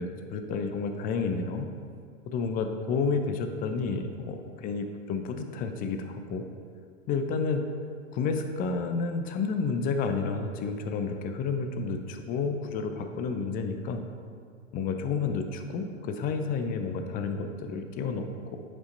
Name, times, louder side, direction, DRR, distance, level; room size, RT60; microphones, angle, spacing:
voice 1, 0.0-1.7 2.3-6.4 7.1-7.7 8.1-14.0 14.7-18.6, left 4 dB, 20° left, 6 dB, 0.5 m, -30 dB
8.1 x 5.4 x 3.9 m, 2.3 s
figure-of-eight pair, 105°, 39 cm